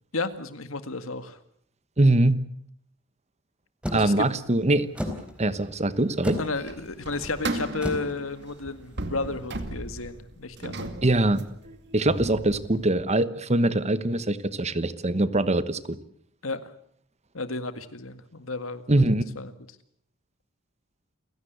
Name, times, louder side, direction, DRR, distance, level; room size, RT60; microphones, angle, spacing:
voice 1, 0.1-1.4 3.9-4.3 6.4-10.9 16.4-16.7 17.3-19.0 19.4-19.5, left 3 dB, 80° left, 11 dB, 1.9 m, -32 dB
voice 2, 2.0-2.4 3.9-4.9 5.4-6.4 11.0-11.5 11.9-16.0 18.9-19.2, right 2 dB, 35° right, 15 dB, 1.1 m, -23 dB
sound 1, 3.8-9.4, left 1 dB, 5° right, 4.0 m, -36 dB
sound 2, 6.5-12.9, right 2 dB, 55° right, 2.2 m, -36 dB
29.5 x 16.5 x 8.1 m, 0.67 s
head